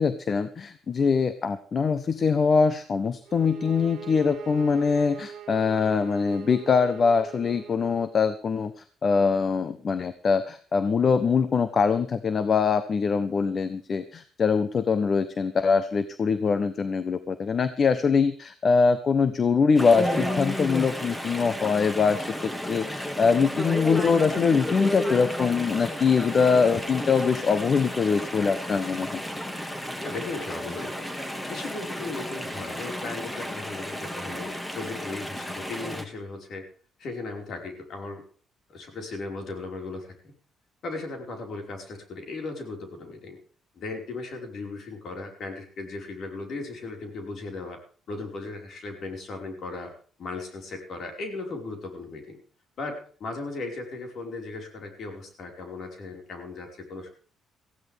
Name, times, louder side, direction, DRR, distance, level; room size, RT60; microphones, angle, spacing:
voice 1, 0.0-29.2, left 5 dB, 45° left, 12 dB, 1.0 m, -23 dB
sound 1, 3.2-8.1, right 8 dB, 70° right, 1.5 m, -42 dB
Chatter / Stream, 19.7-36.0, left 1 dB, 10° left, 2.3 m, -32 dB
voice 2, 30.0-36.6 37.0-38.2 38.7-40.1 40.8-43.4 43.8-47.8 48.1-49.9 50.2-52.4 52.8-57.1, left 3 dB, 60° left, 3 dB, 5.1 m, -37 dB
19.0 x 15.0 x 3.6 m, 0.42 s
cardioid pair, 90°, 0 cm